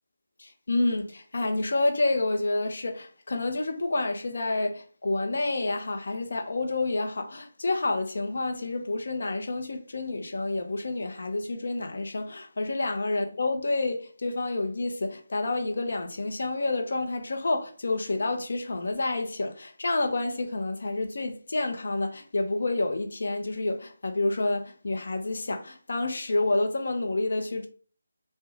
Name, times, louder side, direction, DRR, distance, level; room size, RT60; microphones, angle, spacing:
voice 1, 0.4-27.7, left 2 dB, 65° left, 0.5 m, -29 dB
2.3 x 2.1 x 3.1 m
figure-of-eight pair, 165°, 0 cm